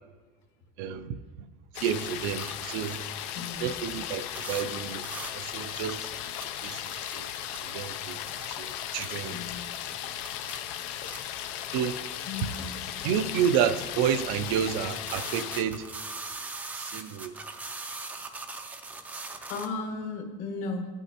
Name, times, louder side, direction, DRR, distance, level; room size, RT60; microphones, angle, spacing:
voice 1, 0.8-1.2 1.8-3.0 3.6-6.1 6.6-7.3 7.6-8.2 8.5-9.4 11.7-12.1 13.0-15.9 16.7-17.3, right 8 dB, 60° right, 0.5 m, -30 dB
sound 1, 1.7-15.6, left 10 dB, 75° left, 0.6 m, -36 dB
sound 2, 2.4-3.6 4.1-4.2 4.4-4.6 5.0-5.3 5.6-5.9 6.4-7.8 8.2-8.5 9.0-9.2 9.7-11.2 11.8-11.9 13.7-13.8 14.4-14.5 14.7-19.7, right 3 dB, 10° right, 0.4 m, -40 dB
voice 2, 3.3-3.7 8.2-8.3 9.2-9.7 12.3-12.8 19.5-20.9, left 4 dB, 50° left, 1.4 m, -35 dB
14.0 x 9.0 x 2.9 m
cardioid pair, 180°, 16 cm